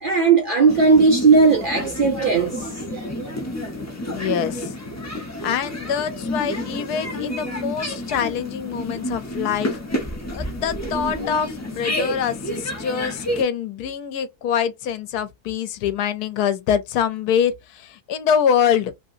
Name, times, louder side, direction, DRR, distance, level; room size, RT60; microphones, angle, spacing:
voice 1, 0.0-3.3, right 4 dB, 55° right, 0.6 m, -17 dB
sound 1, 0.7-13.4, left 1 dB, 25° left, 0.3 m, -30 dB
voice 2, 4.2-4.7 5.4-9.8 10.3-18.9, left 8 dB, 85° left, 1.1 m, -24 dB
2.9 x 2.7 x 2.4 m
omnidirectional pair, 1.6 m